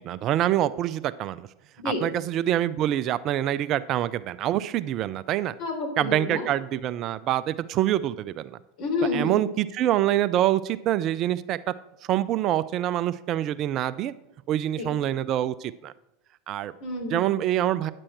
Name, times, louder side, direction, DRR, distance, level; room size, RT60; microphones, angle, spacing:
voice 1, 0.0-1.5 1.8-5.5 6.0-8.6 9.1-11.7 12.1-14.1 14.5-15.9 16.5-16.7 17.1-17.9, right 12 dB, 45° right, 15 dB, 0.4 m, -25 dB
voice 2, 5.6-6.4 8.8-9.3 14.8-14.9 16.8-17.2, left 2 dB, 55° left, 0 dB, 3.6 m, -29 dB
9.9 x 7.6 x 4.4 m, 0.89 s
hypercardioid pair, 90°, 0 cm